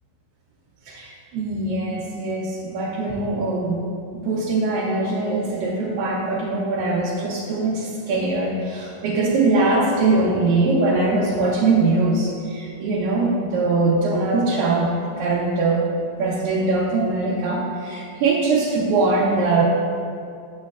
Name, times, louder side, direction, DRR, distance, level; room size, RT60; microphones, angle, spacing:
voice 1, 0.9-3.8 4.1-15.9 16.2-19.6, right 3 dB, 75° right, -5 dB, 2.3 m, -22 dB
9.5 x 7.2 x 2.3 m, 2.4 s
omnidirectional pair, 4.1 m